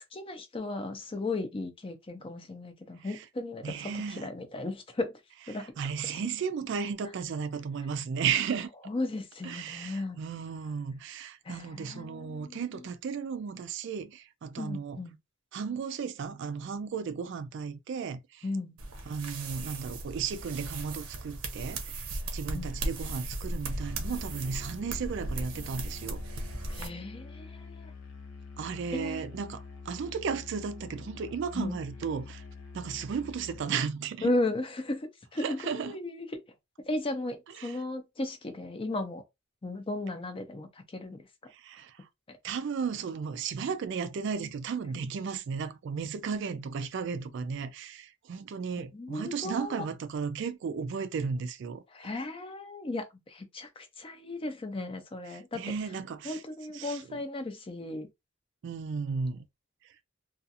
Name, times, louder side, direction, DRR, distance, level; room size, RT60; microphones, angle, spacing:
voice 1, 0.1-5.1 5.5-5.7 6.1-6.2 8.9-10.2 11.4-12.7 14.6-15.2 18.4-18.8 22.5-22.7 26.7-27.9 28.9-29.2 31.5-31.8 34.2-36.4 36.8-39.2 39.6-41.3 42.3-42.4 48.9-49.8 51.9-55.7 56.2-58.1, left 2 dB, 25° left, 0.4 m, -35 dB
voice 2, 3.6-4.3 5.5-8.7 9.4-15.0 15.5-18.4 19.1-22.1 22.3-26.2 28.6-32.4 32.7-34.3 35.4-36.0 37.6-37.8 41.5-42.1 42.4-51.8 55.3-56.4 56.7-57.2 58.6-59.5 59.8-60.0, right 6 dB, 55° right, 0.3 m, -34 dB
sound 1, 18.8-26.9, right 2 dB, 85° right, 0.7 m, -37 dB
Musical instrument, 23.8-33.7, left 4 dB, 75° left, 0.7 m, -46 dB
2.4 x 2.4 x 2.7 m
head